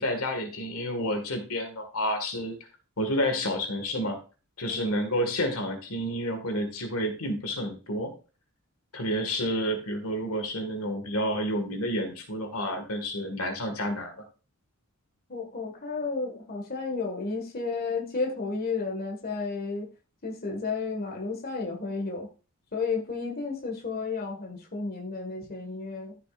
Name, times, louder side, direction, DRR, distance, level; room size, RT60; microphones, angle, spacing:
voice 1, 0.0-2.6 3.0-4.2 4.6-8.1 8.9-14.1, equal, 70° left, 6 dB, 1.8 m, -30 dB
voice 2, 15.3-19.9 20.2-22.3 22.7-26.2, left 4 dB, 45° left, 1 dB, 1.7 m, -32 dB
14.0 x 6.8 x 2.5 m, 0.34 s
head